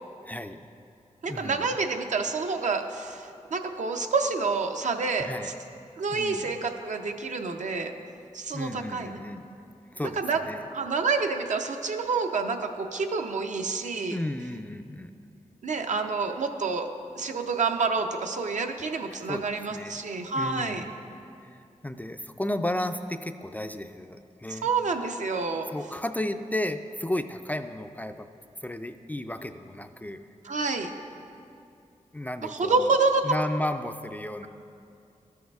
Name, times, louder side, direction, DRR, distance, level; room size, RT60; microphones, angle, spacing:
voice 1, 0.2-0.6 1.3-1.7 5.2-5.5 6.1-6.6 8.5-9.5 9.9-10.6 14.1-15.1 19.1-20.0 20.4-21.0 21.4-24.7 25.7-28.3 28.6-30.2 32.1-32.9 33.2-34.5, left 1 dB, 10° left, 8 dB, 0.3 m, -33 dB
voice 2, 1.2-5.5 6.0-7.9 8.3-9.2 10.2-10.4 10.7-14.2 15.6-16.9 17.2-20.8 24.5-25.7 30.4-30.9 32.5-33.2, right 4 dB, 70° right, 5 dB, 0.6 m, -28 dB
13.0 x 6.3 x 2.3 m, 2.5 s
cardioid pair, 50°, 13 cm